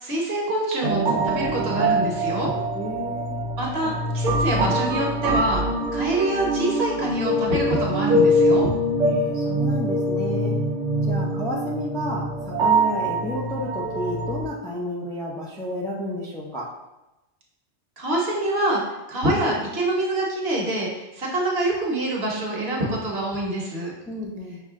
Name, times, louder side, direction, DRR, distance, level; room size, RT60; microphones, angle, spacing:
voice 1, 0.0-2.5 3.6-5.6 5.9-8.7 18.0-18.8 19.1-23.9, right 1 dB, 60° right, -2 dB, 1.2 m, -25 dB
sound 1, 0.8-14.4, right 1 dB, 85° right, 1.0 m, -24 dB
voice 2, 2.7-3.4 9.1-10.5 11.0-16.7 24.1-24.6, equal, 5° left, -4 dB, 0.4 m, -31 dB
6.3 x 2.1 x 3.6 m, 0.98 s
omnidirectional pair, 1.2 m